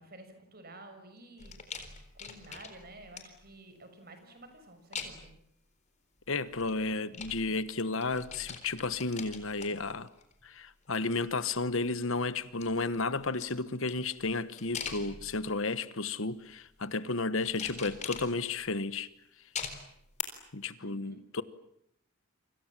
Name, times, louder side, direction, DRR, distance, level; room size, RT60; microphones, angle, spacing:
voice 1, 0.0-1.6 2.1-5.3 20.8-21.2, right 2 dB, 45° right, 6.3 m, -51 dB
sound 1, 1.4-3.5 4.9-5.4 6.5-7.8 8.0-10.5 10.8-11.9 12.4-15.6 16.2-16.7 17.4-18.7 19.6-20.2 20.6-20.7, left 6 dB, 35° left, 3.9 m, -44 dB
voice 2, 6.3-10.1 10.4-19.1 20.5-21.4, left 3 dB, 65° left, 1.3 m, -32 dB
30.0 x 26.0 x 7.5 m
head